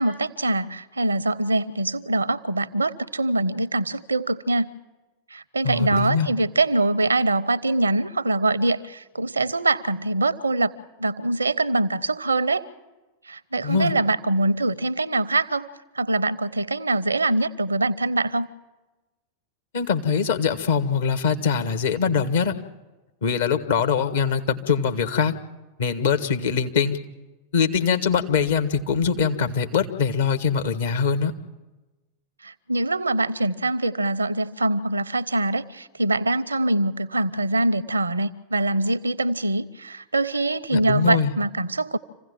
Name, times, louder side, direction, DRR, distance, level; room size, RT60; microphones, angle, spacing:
voice 1, 0.0-4.7 5.3-10.7 11.0-12.7 13.2-15.7 15.9-18.5 32.4-42.0, right 2 dB, 80° right, 0.7 m, -23 dB
voice 2, 5.6-6.3 13.6-13.9 19.7-22.5 23.2-25.3 25.8-27.0 27.5-31.3 40.7-41.3, left 6 dB, 60° left, 1.4 m, -22 dB
26.5 x 16.0 x 7.3 m
figure-of-eight pair, 90°, 0 cm